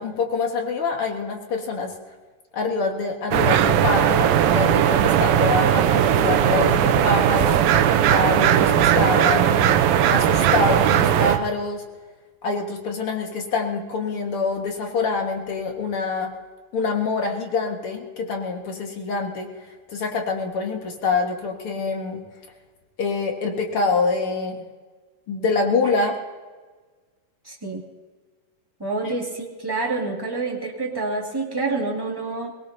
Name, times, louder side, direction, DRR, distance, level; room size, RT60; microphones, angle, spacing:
voice 1, 0.0-1.9 2.5-7.6 8.1-9.8 10.1-11.8 12.4-16.3 16.7-19.5 19.9-22.2 23.0-24.6 25.3-26.1 29.0-29.1, left 4 dB, 50° left, 2 dB, 2.0 m, -25 dB
sound 1, 3.3-11.4, right 10 dB, 90° right, 2.6 m, -18 dB
voice 2, 27.4-27.8 28.8-32.5, right 3 dB, 10° right, -2 dB, 1.0 m, -27 dB
23.0 x 19.0 x 2.7 m, 1.4 s
omnidirectional pair, 4.0 m